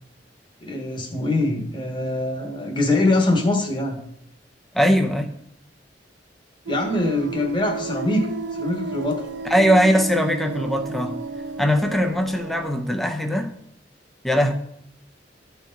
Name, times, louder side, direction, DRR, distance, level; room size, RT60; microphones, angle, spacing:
voice 1, 0.6-4.0 6.7-9.3, left 2 dB, 25° left, 2 dB, 1.5 m, -23 dB
voice 2, 4.7-5.3 9.5-11.2 11.6-13.5 14.2-14.5, equal, ahead, 4 dB, 0.7 m, -20 dB
sound 1, 6.7-12.8, right 4 dB, 85° right, 0.7 m, -32 dB
13.5 x 4.6 x 4.0 m, 0.71 s
head